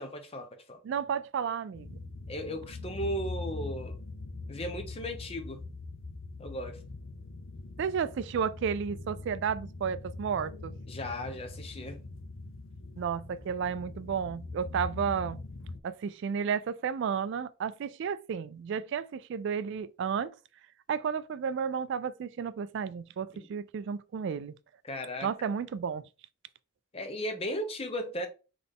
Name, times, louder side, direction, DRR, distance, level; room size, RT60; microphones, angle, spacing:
voice 1, 0.0-0.8 2.3-4.0 4.5-5.6 6.4-6.8 10.9-12.0 23.3-23.5 24.8-25.3 26.9-28.3, equal, 30° left, 0.7 m, -36 dB
voice 2, 0.8-2.0 7.8-10.7 13.0-15.4 15.8-20.3 20.9-24.5 25.2-26.0, right 7 dB, 60° right, 0.3 m, -32 dB
sound 1, 1.7-15.8, left 2 dB, 65° left, 0.6 m, -42 dB
4.0 x 3.3 x 3.5 m
head